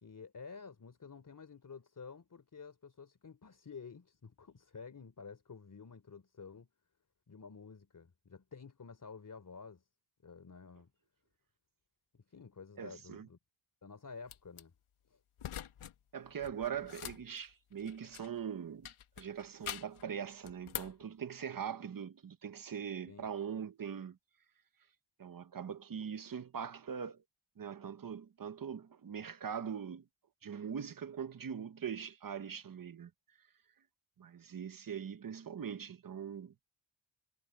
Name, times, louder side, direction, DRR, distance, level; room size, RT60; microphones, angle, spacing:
voice 1, 0.0-6.7 7.3-9.8 10.2-10.9 12.1-13.4 13.8-14.7 15.1-15.2 23.1-23.3, left 5 dB, 40° left, 3.4 m, -51 dB
voice 2, 12.8-13.3 16.1-18.9 19.2-24.2 25.2-27.2 27.6-30.0 30.4-33.1 34.2-36.5, right 7 dB, 40° right, 0.9 m, -42 dB
sound 1, 14.3-14.6 15.4-15.9 16.2-18.4 18.8-20.0 20.4-21.0, left 10 dB, 75° left, 1.3 m, -45 dB
wide cardioid pair, 135°, 50 cm